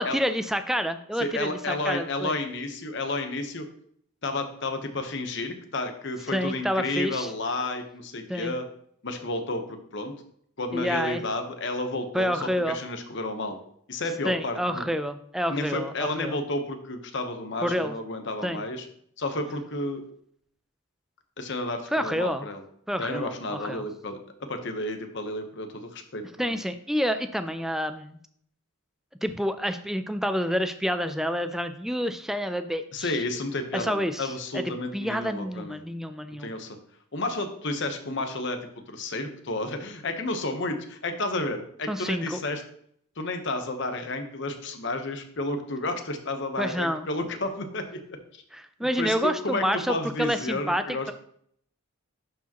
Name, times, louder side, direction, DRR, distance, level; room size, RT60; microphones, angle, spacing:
voice 1, 0.0-2.3 6.3-7.3 8.3-8.5 10.7-11.2 12.1-12.8 14.2-16.4 17.6-17.9 18.4-18.6 21.9-22.5 22.9-23.8 26.4-28.2 29.2-33.2 33.7-34.6 34.9-36.5 41.9-42.4 46.6-47.1 48.5-51.1, equal, ahead, 9 dB, 0.3 m, -28 dB
voice 2, 1.2-3.6 4.2-8.6 9.0-10.1 10.6-13.6 13.9-14.9 15.5-18.9 19.2-20.0 21.4-22.6 23.0-24.2 24.5-26.6 32.9-35.8 36.4-36.8 37.1-38.6 38.9-42.6 43.2-48.0 48.3-48.4 49.0-51.1, left 2 dB, 55° left, 6 dB, 1.0 m, -31 dB
11.5 x 4.8 x 3.0 m, 0.66 s
head